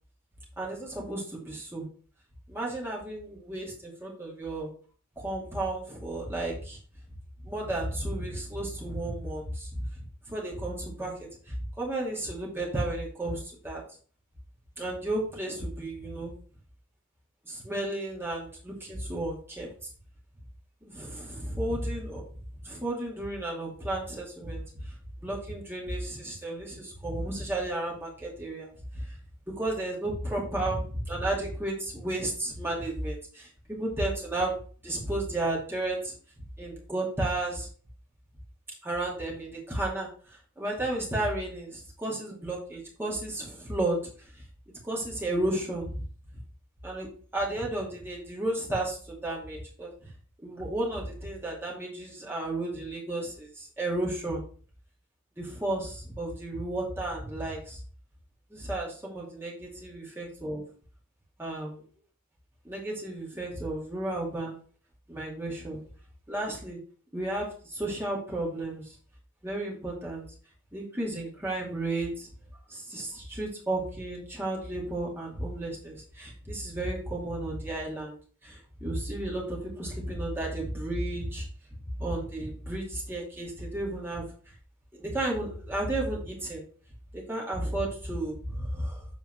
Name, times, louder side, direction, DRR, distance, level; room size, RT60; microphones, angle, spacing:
voice 1, 0.6-1.9 2.5-4.7 5.2-6.8 7.4-9.7 10.3-11.1 11.5-13.8 14.8-16.3 17.5-19.7 20.9-22.2 22.6-24.6 25.2-28.7 28.9-29.1 29.5-34.5 34.8-36.1 36.6-37.7 38.8-40.1 40.6-44.0 44.8-46.0 46.8-47.1 47.3-50.1 50.4-54.4 55.4-57.8 58.5-60.6 61.4-61.8 62.6-64.6 65.1-65.8 66.3-66.8 67.1-68.9 69.4-70.2 70.7-72.3 72.7-78.2 78.4-81.5 82.0-84.2 84.9-86.6 87.1-89.1, right 1 dB, 10° right, -4 dB, 2.4 m, -33 dB
7.9 x 4.5 x 4.6 m, 0.42 s
head